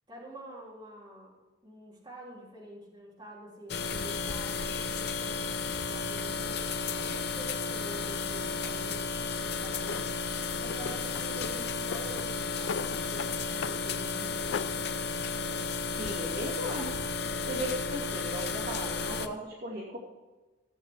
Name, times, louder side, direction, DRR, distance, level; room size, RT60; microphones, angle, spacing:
voice 1, 0.1-1.4 1.6-6.8 7.1-9.1 9.3-10.1 10.6-14.6, right 1 dB, 25° right, -5 dB, 3.5 m, -47 dB
sound 1, 3.7-19.3, left 4 dB, 60° left, 0.8 m, -33 dB
Drawer open or close, 9.8-10.1 10.7-11.5 11.8-13.3 13.6-13.8 14.1-14.8, left 6 dB, 75° left, 0.3 m, -38 dB
voice 2, 16.0-16.9 17.5-20.0, right 1 dB, 55° right, -4 dB, 2.5 m, -36 dB
15.0 x 8.1 x 4.7 m, 1.2 s
head